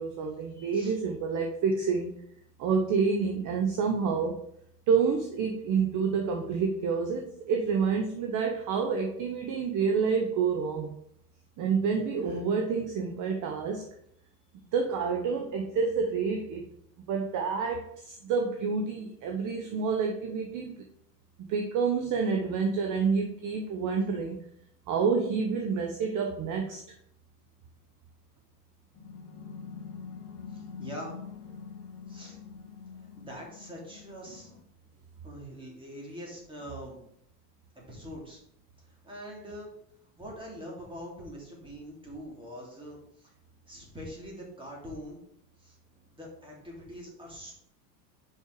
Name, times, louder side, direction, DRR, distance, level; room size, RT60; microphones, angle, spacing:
voice 1, 0.0-2.1 2.6-4.4 4.9-10.9 11.6-13.8 14.7-16.7 17.1-20.7 21.4-24.4 24.9-26.8, right 5 dB, 40° right, 3 dB, 1.0 m, -28 dB
sound 1, 28.9-34.6, left 6 dB, 35° left, 2.0 m, -44 dB
voice 2, 30.5-31.1 32.1-32.4 33.2-34.5 35.2-37.0 37.7-38.4 39.0-39.7 40.2-43.3 43.7-45.2 45.6-45.8 46.2-47.5, equal, 10° right, -3 dB, 3.0 m, -43 dB
5.8 x 5.6 x 4.7 m, 0.71 s
supercardioid pair, 130°, 50 cm